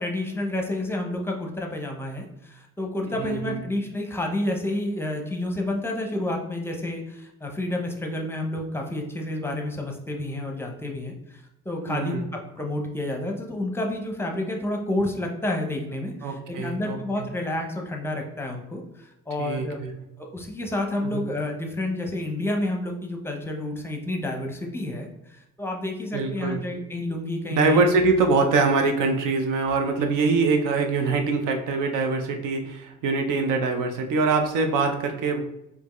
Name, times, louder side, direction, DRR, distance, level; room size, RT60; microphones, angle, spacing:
voice 1, 0.0-19.8 20.2-27.8, left 1 dB, 10° left, 2 dB, 0.6 m, -30 dB
voice 2, 3.2-3.6 11.9-12.2 16.2-17.3 19.4-19.9 21.0-21.2 26.1-26.6 27.5-35.4, right 3 dB, 85° right, 5 dB, 0.7 m, -24 dB
4.5 x 2.8 x 3.0 m, 0.88 s
cardioid pair, 130°, 31 cm